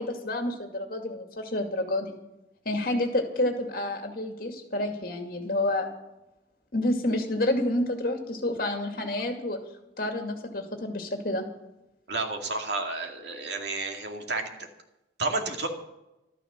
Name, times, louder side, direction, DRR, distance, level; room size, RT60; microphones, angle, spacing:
voice 1, 0.0-2.2 2.6-5.9 6.7-9.6 10.0-11.4, left 1 dB, 50° left, 4 dB, 2.4 m, -29 dB
voice 2, 12.1-14.5 15.2-15.7, right 2 dB, 70° right, 3 dB, 2.3 m, -31 dB
13.0 x 13.0 x 6.8 m, 0.93 s
head